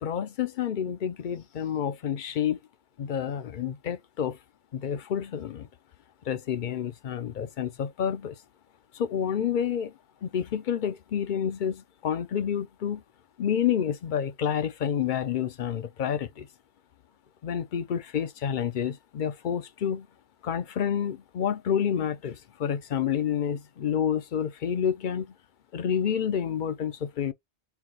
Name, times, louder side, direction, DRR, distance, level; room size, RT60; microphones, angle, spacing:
voice 1, 0.0-2.6 3.0-4.4 4.7-5.7 6.3-8.4 8.9-9.9 10.2-13.0 13.4-16.5 17.4-20.1 20.4-25.3 25.7-27.3, left 8 dB, 55° left, 0.7 m, -29 dB
4.6 x 2.2 x 3.8 m
omnidirectional pair, 1.1 m